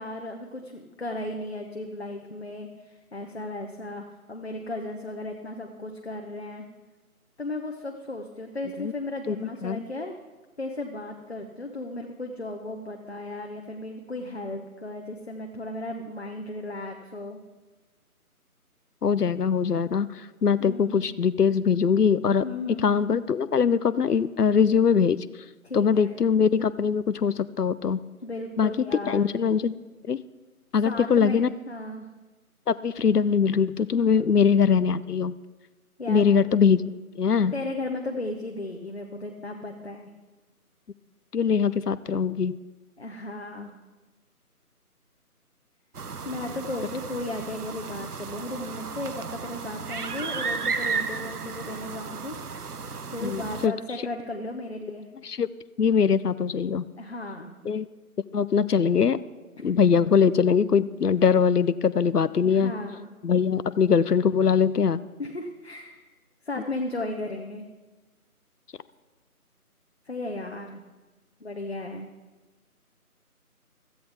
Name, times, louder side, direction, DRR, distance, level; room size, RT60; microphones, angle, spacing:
voice 1, 0.0-6.6 7.4-10.2 10.6-17.4 20.6-21.1 22.4-22.9 25.6-26.1 28.2-29.3 30.8-31.4 31.7-32.1 33.9-34.3 36.0-36.2 37.5-40.1 43.0-43.8 46.2-52.4 53.1-55.1 57.0-57.5 59.6-59.8 62.4-63.1 65.2-66.1 66.4-67.7 70.1-70.8 71.4-72.1, left 2 dB, 45° left, 2 dB, 1.0 m, -35 dB
voice 2, 9.3-9.8 19.0-22.4 22.8-25.2 25.7-28.0 28.6-28.7 29.1-29.7 30.0-30.2 30.7-31.5 32.7-35.3 36.1-36.9 37.2-37.5 41.3-42.5 53.2-53.7 55.2-55.5 55.8-56.8 57.6-57.9 58.3-59.2 59.6-62.8 63.2-65.0, left 6 dB, 90° left, 16 dB, 0.6 m, -22 dB
sound 1, 45.9-53.7, right 5 dB, 80° right, 0.8 m, -34 dB
16.0 x 13.5 x 3.5 m, 1.2 s
figure-of-eight pair, 165°, 45 cm